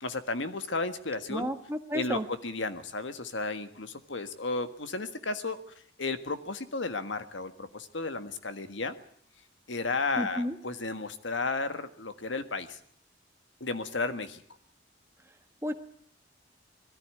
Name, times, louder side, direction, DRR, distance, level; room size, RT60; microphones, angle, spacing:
voice 1, 0.0-1.5 1.9-5.6 6.0-9.0 9.7-12.8 13.6-14.4, left 3 dB, 80° left, 10 dB, 1.6 m, -33 dB
voice 2, 1.3-2.2 10.2-10.6 15.6-15.7, equal, 15° right, 7 dB, 1.4 m, -32 dB
21.0 x 14.0 x 9.6 m, 0.63 s
head